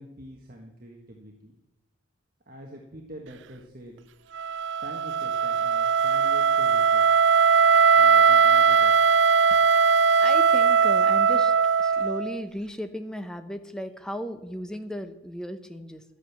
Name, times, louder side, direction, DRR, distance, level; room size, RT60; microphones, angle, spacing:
voice 1, 0.0-1.5 2.5-4.0 4.8-7.3 8.0-8.9, equal, 45° right, 1 dB, 1.4 m, -45 dB
Wind instrument woodwind instrument, 4.3-12.4, right 6 dB, 65° right, 0.4 m, -20 dB
voice 2, 9.5-9.8 10.2-16.0, equal, 5° left, 8 dB, 0.8 m, -36 dB
12.0 x 9.0 x 7.2 m, 0.93 s
head